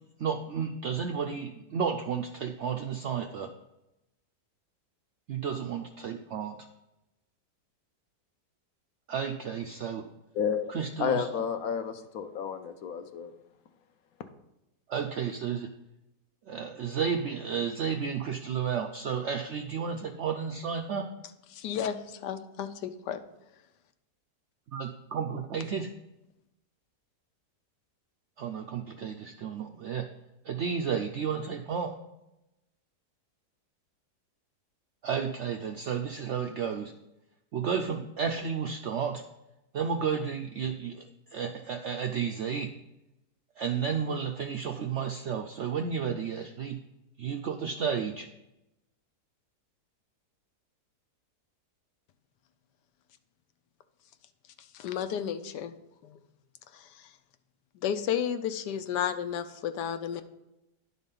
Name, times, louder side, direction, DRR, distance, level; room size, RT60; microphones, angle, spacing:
voice 1, 0.2-3.5 5.3-6.6 9.1-10.0 10.7-11.3 14.9-15.7 16.5-21.1 24.7-25.9 28.4-30.1 30.4-31.9 35.0-36.9 37.5-39.2 39.7-42.7 43.6-46.8 47.2-48.3, right 7 dB, 75° right, 5 dB, 0.6 m, -32 dB
voice 2, 10.3-10.7 11.0-13.3, left 7 dB, 65° left, 8 dB, 1.0 m, -31 dB
voice 3, 21.5-23.2 54.6-55.7 56.0-56.2 56.7-57.1 57.7-60.2, left 9 dB, 90° left, 10 dB, 1.3 m, -33 dB
10.5 x 4.1 x 5.4 m, 0.92 s
omnidirectional pair, 1.8 m